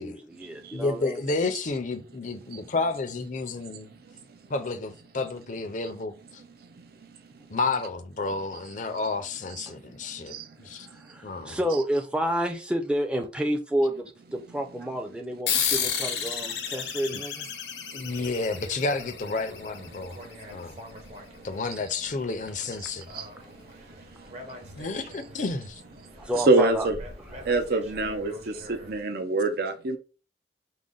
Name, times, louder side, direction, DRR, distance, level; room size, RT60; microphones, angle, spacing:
voice 1, 0.0-1.2 9.7-9.8 10.8-17.5 26.2-26.9, equal, 5° right, 0.5 m, -30 dB
voice 2, 0.7-3.9 4.5-6.4 7.5-10.9 11.2-11.6 17.1-17.2 17.9-20.2 20.5-20.8 21.4-23.1 24.8-25.8, left 3 dB, 45° left, 0.5 m, -31 dB
sound 1, 15.5-20.4, left 8 dB, 80° left, 0.8 m, -31 dB
sound 2, 18.1-29.0, equal, 40° right, 1.0 m, -46 dB
voice 3, 26.4-26.9 27.5-28.3 28.7-30.0, right 2 dB, 60° right, 0.6 m, -24 dB
5.0 x 2.2 x 3.8 m
head